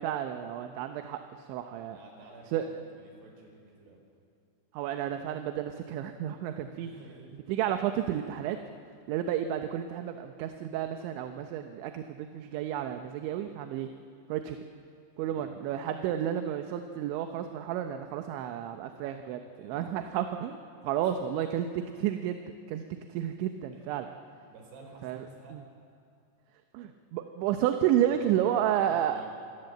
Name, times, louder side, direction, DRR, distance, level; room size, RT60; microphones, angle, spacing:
voice 1, 0.0-2.0 2.5-2.7 4.7-6.9 7.5-8.6 9.1-13.9 14.3-14.6 15.2-21.7 22.0-22.8 23.1-24.1 25.0-25.3 25.5-25.6 26.7-29.2, right 10 dB, 80° right, 6 dB, 3.2 m, -31 dB
voice 2, 1.8-4.0 6.7-7.4 15.2-15.6 19.6-20.0 21.0-21.4 23.7-24.1 24.5-25.6 27.9-29.3, right 3 dB, 60° right, 1 dB, 6.6 m, -52 dB
26.5 x 23.0 x 7.9 m, 2.4 s
omnidirectional pair, 5.4 m